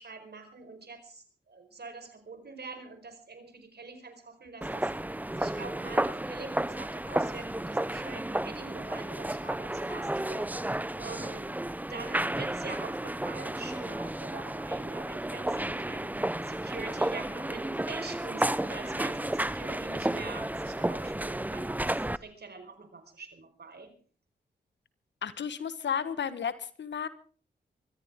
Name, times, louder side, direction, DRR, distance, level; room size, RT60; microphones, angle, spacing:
voice 1, 0.0-11.5 11.9-16.1 16.4-23.9, right 4 dB, 60° right, 7 dB, 4.8 m, -45 dB
sound 1, 4.6-22.2, right 1 dB, 10° right, 0.7 m, -32 dB
voice 2, 25.2-27.1, left 7 dB, 70° left, 14 dB, 1.3 m, -33 dB
23.5 x 14.5 x 3.7 m, 0.42 s
supercardioid pair, 40°, 19 cm